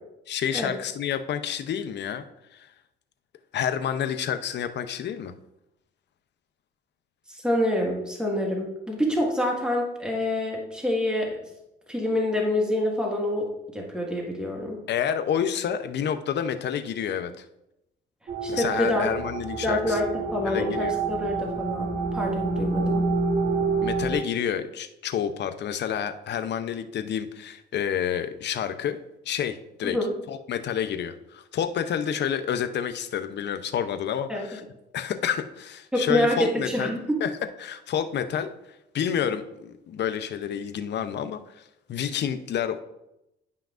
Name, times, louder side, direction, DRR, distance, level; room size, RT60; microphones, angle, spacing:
voice 1, 0.3-2.2 2.5-2.7 3.5-5.3 14.9-17.5 18.5-20.0 20.5-20.9 23.8-30.0 30.3-34.6 34.9-37.3 37.6-38.5 38.9-42.8, left 8 dB, 60° left, 10 dB, 0.6 m, -29 dB
voice 2, 7.3-11.4 11.9-14.8 18.4-19.1 19.6-23.1 29.8-30.1 34.3-34.4 35.9-37.2, left 1 dB, 5° right, -1 dB, 1.7 m, -26 dB
sound 1, 18.3-24.2, right 4 dB, 45° right, 2.0 m, -28 dB
10.0 x 5.7 x 2.5 m, 0.88 s
cardioid pair, 90°, 20 cm